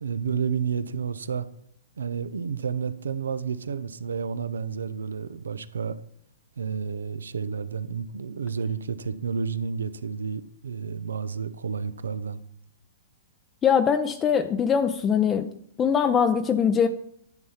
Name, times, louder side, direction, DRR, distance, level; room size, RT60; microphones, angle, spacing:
voice 1, 0.0-1.5 2.0-6.0 6.6-12.4, right 6 dB, 85° right, 0.7 m, -30 dB
voice 2, 13.6-15.5 15.8-16.9, left 7 dB, 20° left, 0.5 m, -22 dB
10.5 x 4.2 x 7.1 m
hypercardioid pair, 130°, 0 cm